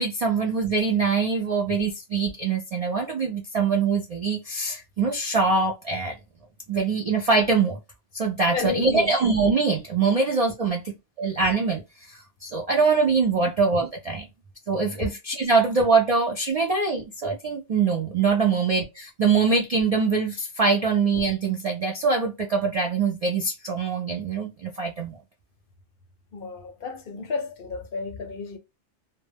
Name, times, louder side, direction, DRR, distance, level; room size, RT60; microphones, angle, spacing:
voice 1, 0.0-6.2 6.7-7.8 8.1-14.3 14.7-18.8 19.2-25.2, right 4 dB, 65° right, 0.3 m, -23 dB
voice 2, 8.5-9.2 13.4-13.5 26.3-28.6, left 5 dB, 60° left, 0.7 m, -31 dB
2.1 x 2.0 x 3.2 m
omnidirectional pair, 1.2 m